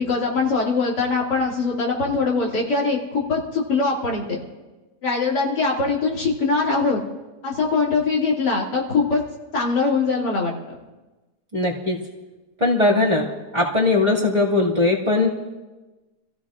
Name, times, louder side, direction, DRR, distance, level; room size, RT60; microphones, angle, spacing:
voice 1, 0.0-4.4 5.0-7.0 7.4-9.2 9.5-10.5, left 4 dB, 80° left, -3 dB, 2.9 m, -22 dB
voice 2, 11.5-12.0 12.6-13.3 13.5-15.3, left 2 dB, 25° right, -5 dB, 2.1 m, -19 dB
27.0 x 15.0 x 2.4 m, 1.2 s
omnidirectional pair, 1.8 m